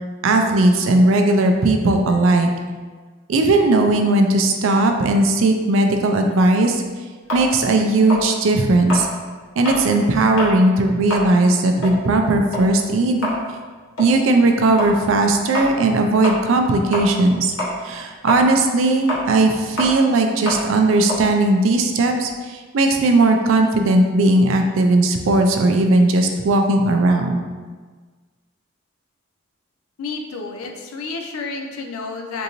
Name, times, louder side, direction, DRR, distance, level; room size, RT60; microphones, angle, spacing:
voice 1, 0.2-2.5 3.3-6.8 7.3-9.1 9.6-13.3 14.0-17.5 17.8-27.4, right 2 dB, 70° right, 4 dB, 0.4 m, -17 dB
sound 1, 7.3-9.9 10.3-10.6 10.9-17.3 17.6-22.4, left 1 dB, 75° left, 1.0 m, -28 dB
voice 2, 30.0-32.4, left 4 dB, 90° left, 3 dB, 0.4 m, -30 dB
3.7 x 2.6 x 2.9 m, 1.5 s
head